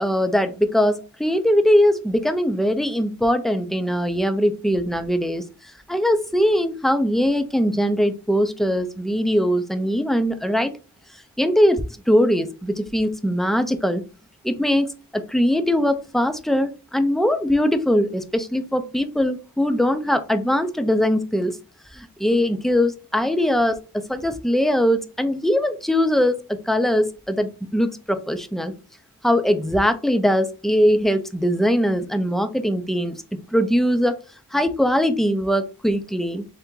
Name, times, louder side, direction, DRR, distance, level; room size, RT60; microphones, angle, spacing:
voice 1, 0.0-5.4 5.9-10.7 11.4-14.0 14.4-21.6 21.9-28.7 29.2-33.1 33.5-34.2 34.5-36.5, equal, ahead, 8 dB, 0.5 m, -21 dB
3.4 x 2.9 x 3.7 m, 0.32 s
wide cardioid pair, 50°, 40 cm